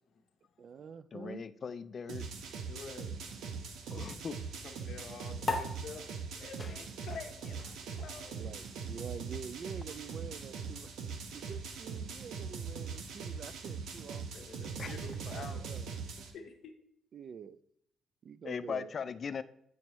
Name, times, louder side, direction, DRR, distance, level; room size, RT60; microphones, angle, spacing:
voice 1, 0.6-1.4 8.3-10.9 11.3-14.5 15.0-15.9 16.2-16.4 17.1-17.6 18.2-19.0, right 6 dB, 55° right, 16 dB, 0.3 m, -47 dB
voice 2, 1.1-2.3 3.9-4.4 14.8-14.9 18.4-19.4, left 6 dB, 45° left, 13 dB, 0.3 m, -39 dB
sound 1, 2.1-16.3, right 5 dB, 80° right, 0.8 m, -41 dB
voice 3, 2.6-3.1 4.6-6.0 6.3-8.4 14.3-15.6 16.3-16.7, left 5 dB, 65° left, 3 dB, 0.9 m, -48 dB
sound 2, 5.4-12.2, left 3 dB, 20° left, 0.9 m, -43 dB
8.3 x 4.6 x 3.0 m, 0.72 s
cardioid pair, 90°, 0 cm